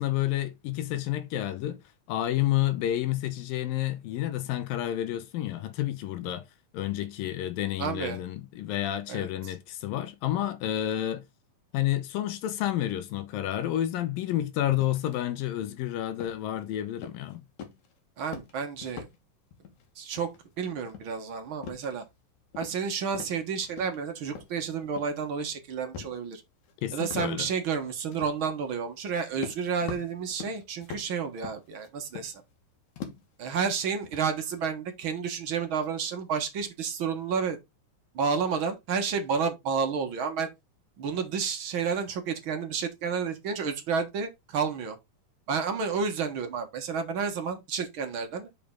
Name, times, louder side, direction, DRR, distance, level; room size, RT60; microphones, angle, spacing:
voice 1, 0.0-1.8 2.1-6.4 6.7-11.2 11.7-17.4 26.8-27.5, left 13 dB, 85° left, 2.7 m, -30 dB
voice 2, 7.8-8.2 9.1-9.5 18.2-19.1 19.9-20.3 20.6-22.0 22.6-26.4 26.9-32.4 33.4-37.6 38.1-40.5 41.0-45.0 45.5-48.6, right 6 dB, 60° right, 1.4 m, -30 dB
sound 1, 14.8-15.2 15.5-15.8 16.2-16.6 17.0-17.3 17.6-17.9 18.2-19.2 19.5-19.9 20.2-20.6 20.8-22.2 22.5-22.9 23.1-24.0 24.2-25.3 25.9-26.2 26.6-26.7 27.1-27.3 28.1-28.4 29.0-29.1 29.4-32.6 33.0-33.3 33.8-34.6, left 7 dB, 60° left, 2.8 m, -43 dB
6.8 x 5.2 x 3.7 m
omnidirectional pair, 4.0 m